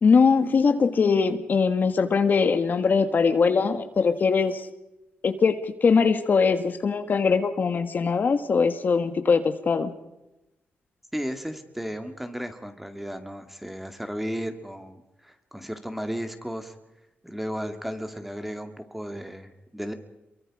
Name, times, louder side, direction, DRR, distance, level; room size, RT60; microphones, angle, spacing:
voice 1, 0.0-4.7 5.2-9.9, left 5 dB, 50° left, 8 dB, 1.7 m, -21 dB
voice 2, 11.1-16.7 17.2-19.9, equal, 5° right, 7 dB, 2.4 m, -34 dB
27.5 x 23.5 x 5.0 m, 0.95 s
cardioid pair, 100°, 4 cm